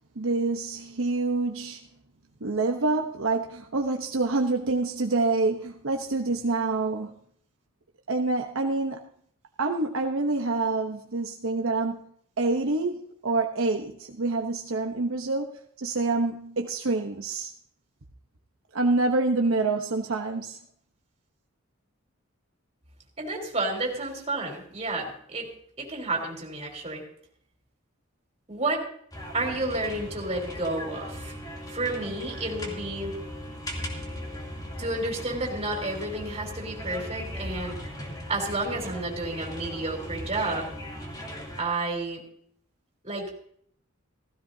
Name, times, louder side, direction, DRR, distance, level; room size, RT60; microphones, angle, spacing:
voice 1, 0.2-1.8 2.4-7.1 8.1-9.1 9.6-12.0 12.4-17.5 18.7-20.6, right 3 dB, 75° right, 3 dB, 1.0 m, -27 dB
voice 2, 23.2-25.5 25.8-27.0 28.5-28.8 29.3-31.3 31.7-33.1 34.8-37.8 38.3-40.7 41.6-42.2 43.0-43.3, right 2 dB, 30° right, 0 dB, 3.7 m, -31 dB
sound 1, 29.1-41.6, equal, 20° left, 2.8 m, -38 dB
16.0 x 15.5 x 2.8 m, 0.64 s
head